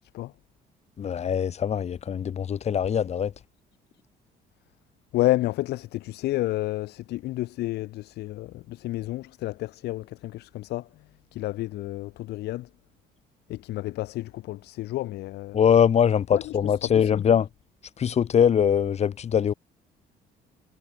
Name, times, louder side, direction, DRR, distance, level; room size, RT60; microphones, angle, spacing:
voice 1, 1.0-3.3 15.5-17.5 18.0-19.5, left 8 dB, 40° left, 1.0 m, -22 dB
voice 2, 5.1-12.7 13.5-15.6 16.3-17.2, left 16 dB, 80° left, 2.1 m, -30 dB
cardioid pair, 110°, 17 cm